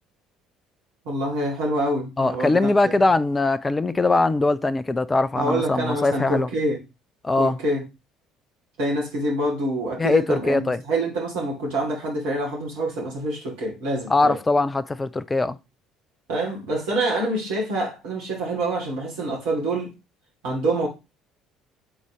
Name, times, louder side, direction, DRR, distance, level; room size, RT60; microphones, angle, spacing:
voice 1, 1.0-2.9 5.4-6.8 7.4-7.8 8.8-14.4 16.3-19.9 20.4-20.9, right 1 dB, 60° right, 2.5 m, -26 dB
voice 2, 2.2-6.5 7.2-7.6 10.0-10.8 14.1-15.6, left 2 dB, 20° left, 0.4 m, -21 dB
7.9 x 4.0 x 3.0 m
figure-of-eight pair, 55°, 0 cm